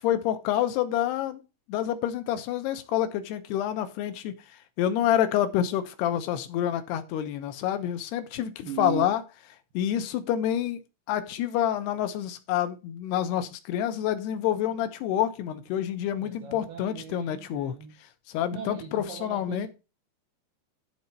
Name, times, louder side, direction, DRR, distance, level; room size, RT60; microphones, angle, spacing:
voice 1, 0.0-1.4 1.7-4.3 4.8-9.2 9.7-10.8 11.1-17.7 18.3-19.7, left 11 dB, 75° left, 2.8 m, -28 dB
voice 2, 8.7-9.1 16.2-18.0 18.5-19.7, right 9 dB, 80° right, 2.0 m, -38 dB
12.0 x 4.3 x 5.4 m
omnidirectional pair, 5.1 m